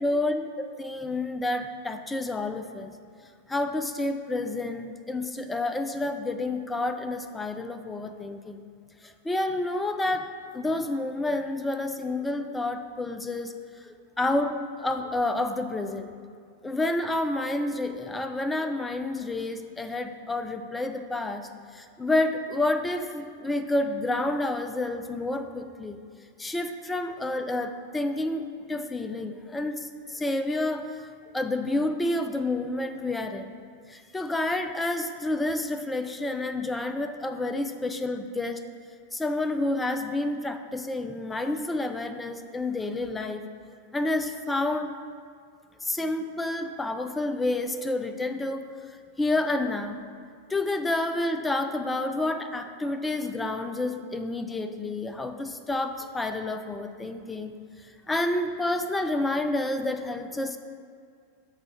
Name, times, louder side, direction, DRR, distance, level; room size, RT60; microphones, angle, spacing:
voice 1, 0.0-2.9 3.5-8.6 9.0-10.3 10.5-13.5 13.8-16.1 16.6-21.5 21.7-26.0 26.4-31.1 31.3-33.6 33.9-38.6 39.1-43.5 43.9-44.9 45.8-48.7 49.2-50.0 50.5-57.6 58.1-60.6, left 2 dB, 10° left, 7 dB, 0.4 m, -29 dB
7.4 x 3.7 x 4.6 m, 2.2 s
figure-of-eight pair, 90°, 0 cm